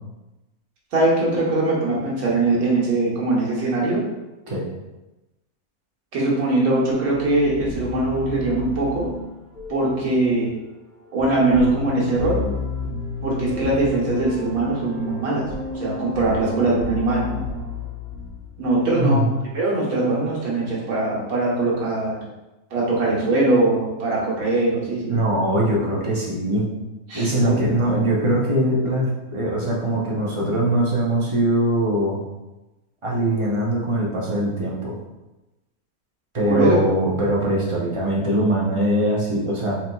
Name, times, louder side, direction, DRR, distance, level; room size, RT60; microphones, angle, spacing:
voice 1, 0.9-4.0 6.1-9.1 9.7-10.5 11.1-12.4 13.2-17.4 18.6-19.3 19.5-22.2 22.7-25.2 27.1-27.5 27.9-28.0 36.5-36.7, right 2 dB, 70° right, -5 dB, 1.6 m, -21 dB
sound 1, 6.8-18.9, left 4 dB, 80° left, 1.6 m, -32 dB
voice 2, 19.0-19.3 25.1-26.7 27.1-32.2 33.0-35.0 36.3-39.8, right 1 dB, 35° right, -4 dB, 0.5 m, -21 dB
4.4 x 4.0 x 2.3 m, 1.0 s
omnidirectional pair, 1.6 m